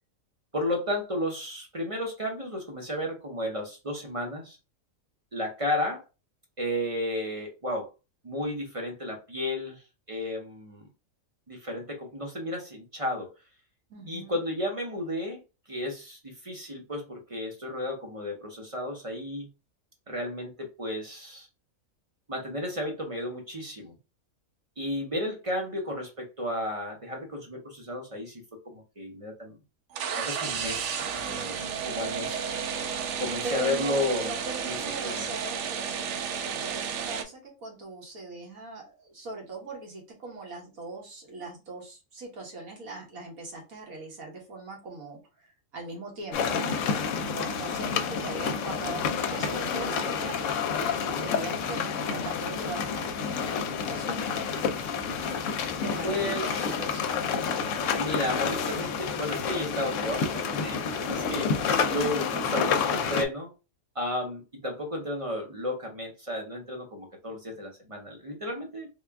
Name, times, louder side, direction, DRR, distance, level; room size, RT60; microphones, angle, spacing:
voice 1, 0.5-4.6 5.3-6.0 6.6-7.9 8.2-9.8 10.1-10.9 11.5-13.3 14.1-15.4 15.7-19.5 20.1-21.5 22.3-23.9 24.8-29.5 30.2-32.4 33.2-34.3 34.6-34.8 35.0-35.2 56.0-56.4 57.9-61.5 61.9-62.2 62.5-63.5 63.9-68.9, left 1 dB, 35° right, 0.6 m, -33 dB
voice 2, 13.9-14.4 33.4-46.8 47.3-54.3 55.8-57.2 61.6-62.4, right 3 dB, 85° right, 1.7 m, -40 dB
sound 1, 29.9-37.2, right 7 dB, 65° right, 0.8 m, -32 dB
sound 2, 46.3-63.2, left 6 dB, 70° left, 0.8 m, -29 dB
3.5 x 2.3 x 3.4 m
omnidirectional pair, 1.4 m